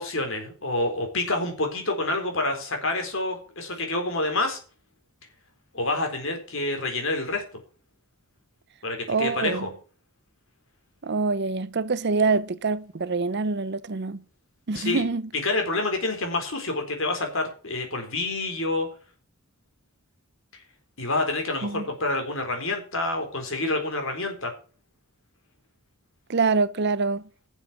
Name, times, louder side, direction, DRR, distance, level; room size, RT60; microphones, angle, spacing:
voice 1, 0.0-4.6 5.7-7.4 8.8-9.7 14.7-15.0 15.4-18.9 21.0-24.5, left 2 dB, 60° left, 4.0 m, -28 dB
voice 2, 9.1-9.7 11.0-14.2 14.7-15.2 21.6-21.8 26.3-27.2, right 4 dB, 50° right, 0.6 m, -25 dB
11.5 x 7.3 x 7.3 m
head